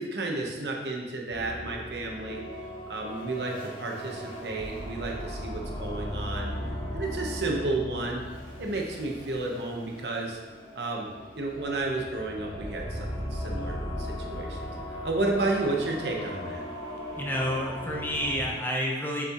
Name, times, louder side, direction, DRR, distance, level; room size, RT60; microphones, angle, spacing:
voice 1, 0.0-2.4 2.9-6.5 6.9-8.2 8.6-10.4 10.7-11.1 11.3-13.0 13.3-16.6, right 2 dB, 65° right, 0 dB, 1.1 m, -32 dB
sound 1, 1.3-18.5, equal, 25° left, 2.1 m, -38 dB
voice 2, 17.1-19.2, equal, 10° left, -2 dB, 0.9 m, -29 dB
7.5 x 7.0 x 3.1 m, 1.3 s
head